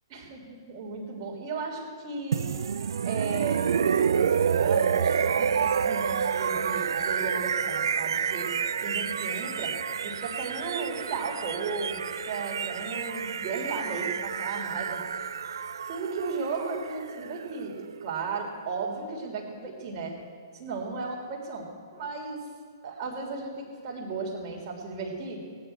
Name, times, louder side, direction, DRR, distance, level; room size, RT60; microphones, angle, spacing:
voice 1, 0.1-2.5 3.1-8.5 8.8-9.7 10.0-15.0 15.9-17.7 18.0-20.2 20.5-22.4 22.8-25.4, right 4 dB, 35° right, 0 dB, 3.5 m, -35 dB
sound 1, 2.3-18.2, right 7 dB, 65° right, 0.4 m, -29 dB
19.0 x 10.0 x 4.5 m, 2.1 s
figure-of-eight pair, 120°, 2 cm